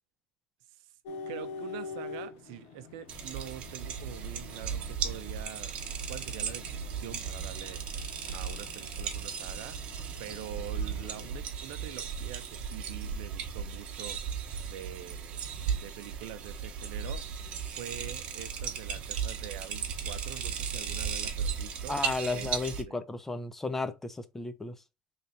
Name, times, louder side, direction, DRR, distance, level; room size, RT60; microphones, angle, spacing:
sound 1, 1.1-11.4, left 4 dB, 75° left, 0.5 m, -46 dB
voice 1, 1.3-7.8 8.3-9.8 10.2-14.2 14.6-15.4 15.7-17.2 17.8-22.0 22.3-22.5 22.9-23.0, right 12 dB, 80° right, 0.5 m, -45 dB
sound 2, 3.1-22.8, right 7 dB, 45° right, 0.9 m, -36 dB
voice 2, 21.9-24.8, left 3 dB, 10° left, 0.5 m, -34 dB
3.2 x 2.7 x 4.1 m
cardioid pair, 135°, 3 cm